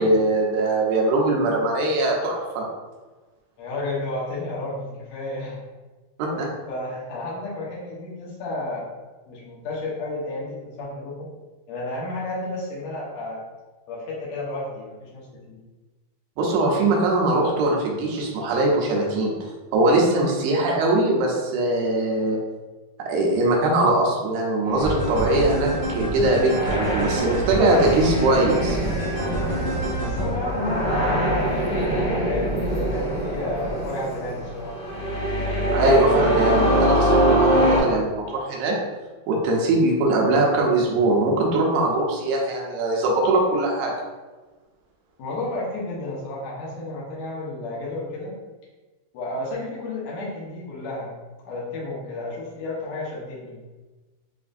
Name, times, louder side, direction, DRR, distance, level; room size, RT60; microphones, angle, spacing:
voice 1, 0.0-2.7 6.2-6.5 16.4-22.4 23.1-28.8 35.7-38.8 39.3-43.9, right 2 dB, 85° right, -1 dB, 2.8 m, -21 dB
voice 2, 3.6-5.6 6.3-6.4 6.7-8.8 9.3-11.3 11.7-13.4 13.9-15.6 30.0-32.5 32.8-34.8 45.2-48.3 49.1-51.1 51.4-53.6, left 2 dB, 85° left, -6 dB, 1.5 m, -32 dB
sound 1, 24.7-37.8, equal, 65° left, 1.5 m, -24 dB
sound 2, 24.8-30.3, right 1 dB, 70° right, 1.4 m, -28 dB
7.1 x 2.6 x 2.5 m, 1.2 s
omnidirectional pair, 4.6 m